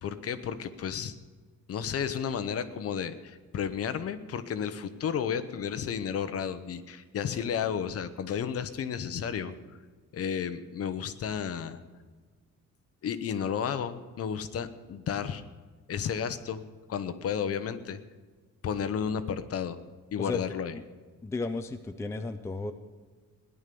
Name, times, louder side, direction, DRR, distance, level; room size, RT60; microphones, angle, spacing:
voice 1, 0.0-1.2 1.7-9.5 10.1-11.8 13.0-15.4 15.9-16.6 16.9-18.0 18.6-19.8 20.1-20.7, left 7 dB, 50° left, 11 dB, 0.9 m, -32 dB
voice 2, 21.2-22.7, left 3 dB, 10° left, 7 dB, 0.5 m, -34 dB
17.5 x 11.0 x 6.8 m, 1.4 s
cardioid pair, 180°, 31 cm